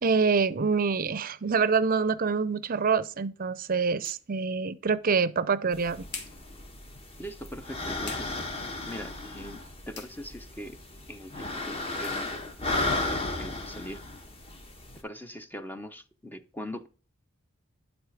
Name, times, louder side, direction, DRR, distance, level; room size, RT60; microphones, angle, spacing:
voice 1, 0.0-6.1, right 5 dB, 40° right, 0.5 m, -26 dB
sound 1, 2.3-13.8, left 5 dB, 55° left, 1.9 m, -51 dB
sound 2, 5.7-15.0, left 2 dB, 25° left, 1.3 m, -35 dB
voice 2, 7.2-8.3 8.8-10.8 11.1-12.3 12.9-14.0 15.0-16.9, equal, 10° left, 0.6 m, -41 dB
11.5 x 4.1 x 4.9 m
head